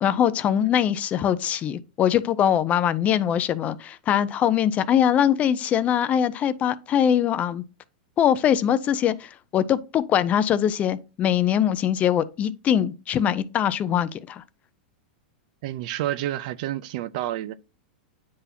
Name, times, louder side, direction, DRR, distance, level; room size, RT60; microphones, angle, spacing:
voice 1, 0.0-7.6 8.2-14.4, left 9 dB, 30° left, 0.5 m, -22 dB
voice 2, 15.6-17.5, right 13 dB, 60° right, 0.5 m, -29 dB
9.4 x 4.0 x 2.8 m
hypercardioid pair, 125°, 5 cm